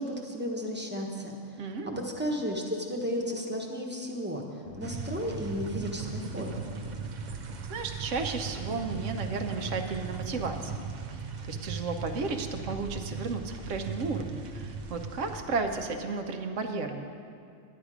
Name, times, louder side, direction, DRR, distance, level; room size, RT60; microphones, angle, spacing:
voice 1, 0.0-1.6 2.0-4.4 4.8-6.6, equal, 10° right, 0 dB, 1.0 m, -33 dB
voice 2, 1.6-2.0 7.3-7.4 7.7-10.8 11.1-17.1, right 4 dB, 80° right, 5 dB, 1.1 m, -33 dB
sound 1, 4.6-15.8, left 2 dB, 70° left, 1.2 m, -48 dB
sound 2, 4.8-15.4, right 5 dB, 50° right, 0.6 m, -38 dB
11.0 x 9.8 x 5.0 m, 2.4 s
omnidirectional pair, 1.3 m